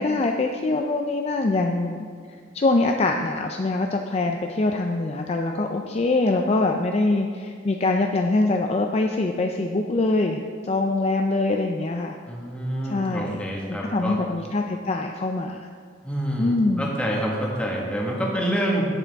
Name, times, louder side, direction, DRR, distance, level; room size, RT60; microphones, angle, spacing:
voice 1, 0.0-2.1 2.5-12.2 12.8-15.7 16.4-16.9, left 2 dB, 35° left, 3 dB, 0.4 m, -24 dB
voice 2, 12.3-14.2 16.0-18.8, equal, 5° left, -3 dB, 1.4 m, -27 dB
10.5 x 8.4 x 3.5 m, 2.1 s
head